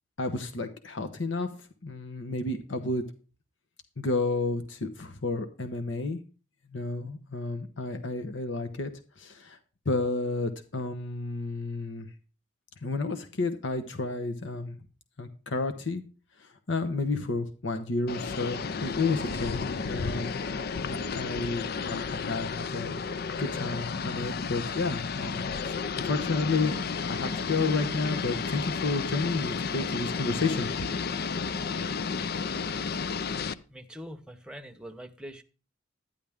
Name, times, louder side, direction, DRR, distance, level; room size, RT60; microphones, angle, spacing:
voice 1, 0.2-1.5 1.8-3.1 4.0-6.2 6.7-8.9 9.2-9.6 9.8-12.1 12.8-14.8 15.2-16.0 16.4-20.3 20.9-22.9 23.4-30.7, left 3 dB, 80° left, 7 dB, 1.0 m, -31 dB
sound 1, 18.1-33.5, left 5 dB, 55° left, 0.5 m, -32 dB
voice 2, 32.9-33.3 33.7-35.4, equal, 5° right, 5 dB, 0.9 m, -44 dB
12.0 x 10.0 x 3.6 m, 0.35 s
head